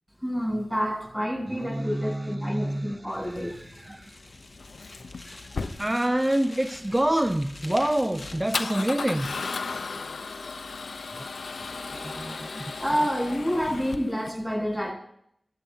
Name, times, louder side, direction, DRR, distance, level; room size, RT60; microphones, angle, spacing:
voice 1, 0.2-3.7 12.8-14.9, equal, ahead, -2 dB, 8.0 m, -28 dB
voice 2, 1.5-2.9 3.2-4.1 5.3-5.4 5.8-9.3 9.7-9.8 11.1-11.3 11.7-12.8, right 1 dB, 20° right, 7 dB, 0.9 m, -28 dB
sound 1, 3.1-9.0, left 2 dB, 55° left, 2.4 m, -46 dB
Male speech man speaking / Car / Engine starting, 3.2-14.3, left 4 dB, 90° left, 0.8 m, -36 dB
27.5 x 14.5 x 2.9 m, 0.73 s
cardioid pair, 45°, 0 cm